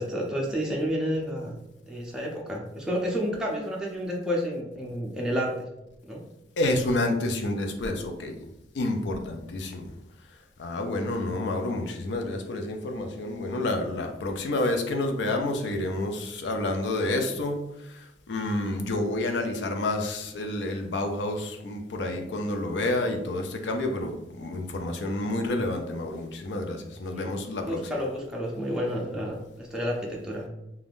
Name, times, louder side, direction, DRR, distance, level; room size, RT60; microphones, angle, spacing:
voice 1, 0.0-1.6 1.9-5.7 6.1-6.2 27.1-27.3 27.7-30.5, equal, 5° right, -3 dB, 0.4 m, -30 dB
voice 2, 6.6-8.4 8.7-9.9 10.6-27.9, left 2 dB, 75° left, 4 dB, 0.4 m, -29 dB
2.5 x 2.3 x 3.4 m, 0.87 s
head